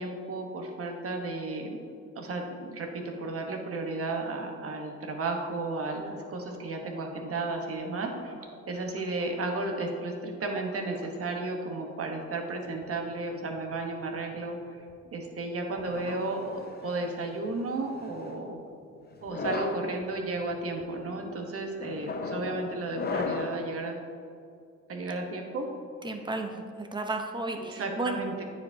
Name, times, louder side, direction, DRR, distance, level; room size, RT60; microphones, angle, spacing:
voice 1, 0.0-1.8 2.1-8.3 8.7-14.6 15.1-18.6 19.2-24.0 24.9-25.7 27.7-28.4, right 2 dB, 50° right, 2 dB, 1.1 m, -33 dB
sound 1, 5.4-22.5, left 3 dB, 60° left, 1.5 m, -55 dB
sound 2, 15.8-17.2 18.0-18.4 19.2-19.9 20.5-20.8 21.8-23.7, left 4 dB, 35° left, 0.5 m, -35 dB
voice 2, 26.0-28.2, right 2 dB, 15° right, 4 dB, 0.7 m, -33 dB
9.3 x 4.7 x 2.7 m, 2.3 s
cardioid pair, 90°, 30 cm